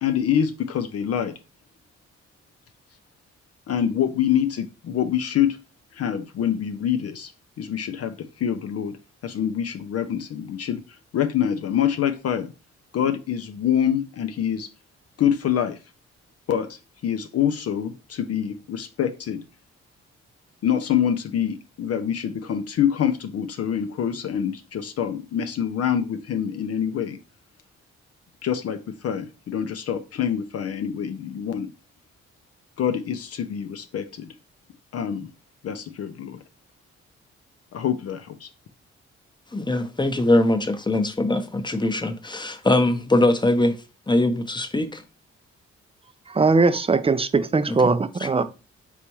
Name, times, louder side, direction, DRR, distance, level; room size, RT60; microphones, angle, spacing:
voice 1, 0.0-1.3 3.7-5.6 5.9-7.3 7.6-9.0 9.2-10.8 11.1-12.5 12.9-14.7 15.2-15.8 16.5-19.4 20.6-27.2 28.4-31.7 32.8-34.3 34.9-35.3 35.6-36.4 37.7-38.5, left 9 dB, 55° left, 0.5 m, -25 dB
voice 2, 39.5-43.8 44.1-45.0 47.7-47.8 48.4-48.5, left 1 dB, 15° left, 0.8 m, -22 dB
voice 3, 46.3-48.4, right 4 dB, 20° right, 0.5 m, -20 dB
4.1 x 3.4 x 3.0 m
supercardioid pair, 50°, 29 cm